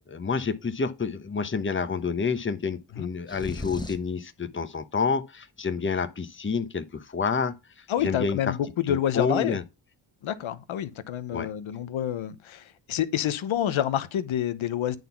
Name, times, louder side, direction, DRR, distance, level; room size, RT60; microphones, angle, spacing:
voice 1, 0.1-8.6 8.9-9.6 11.3-11.5, left 5 dB, 25° left, 1.0 m, -29 dB
sound 1, 3.3-4.2, left 2 dB, 10° left, 1.3 m, -36 dB
voice 2, 7.9-9.6 10.2-15.0, left 10 dB, 85° left, 1.0 m, -28 dB
9.1 x 4.0 x 5.8 m
cardioid pair, 60°, 46 cm